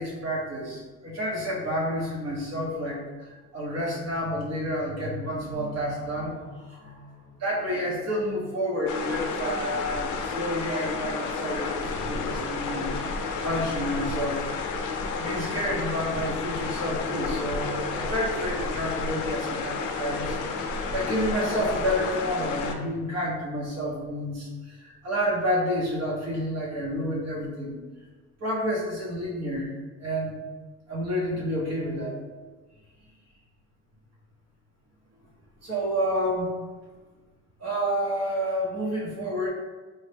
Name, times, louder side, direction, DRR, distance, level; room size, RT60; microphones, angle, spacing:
voice 1, 0.0-13.1 13.4-14.4 15.1-27.8 28.4-29.7 30.0-30.3 30.9-32.1 35.6-36.5 37.6-39.5, equal, 60° right, -4 dB, 1.2 m, -29 dB
sound 1, 8.9-22.8, left 4 dB, 85° left, 0.5 m, -31 dB
4.2 x 2.4 x 3.4 m, 1.3 s
cardioid pair, 90°, 30 cm